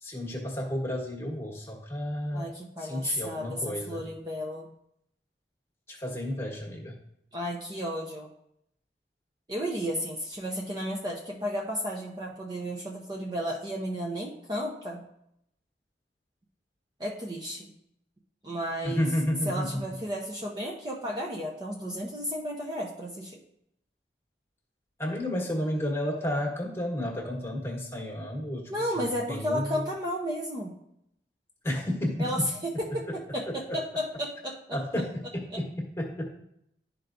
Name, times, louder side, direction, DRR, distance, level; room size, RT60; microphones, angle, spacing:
voice 1, 0.0-2.5 2.8-4.0 5.9-7.0 18.8-19.7 25.0-29.9 31.6-32.5 33.1-33.2 33.5-33.8 34.7-36.3, left 1 dB, 15° left, -1 dB, 1.3 m, -32 dB
voice 2, 2.3-4.7 7.3-8.3 9.5-15.0 17.0-17.7 18.4-19.1 19.4-23.4 28.7-30.7 32.2-34.6, equal, 25° right, -1 dB, 0.6 m, -33 dB
11.5 x 4.5 x 2.6 m, 0.76 s
head